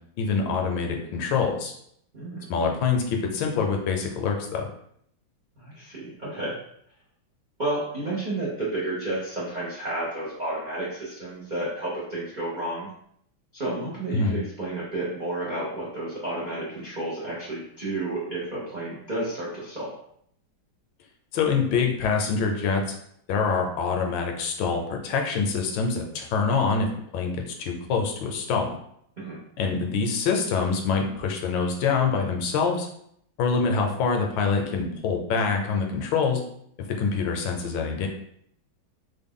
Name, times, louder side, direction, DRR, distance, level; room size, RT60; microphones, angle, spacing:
voice 1, 0.2-1.7 2.5-4.7 14.1-14.4 21.3-22.8 23.3-28.7 29.6-32.9 33.4-36.4 37.0-38.1, left 5 dB, 75° left, 2 dB, 1.3 m, -25 dB
voice 2, 5.6-6.6 7.6-12.9 13.5-20.0 29.2-29.4, right 2 dB, 85° right, -7 dB, 0.4 m, -31 dB
3.6 x 2.2 x 3.6 m, 0.70 s
omnidirectional pair, 2.2 m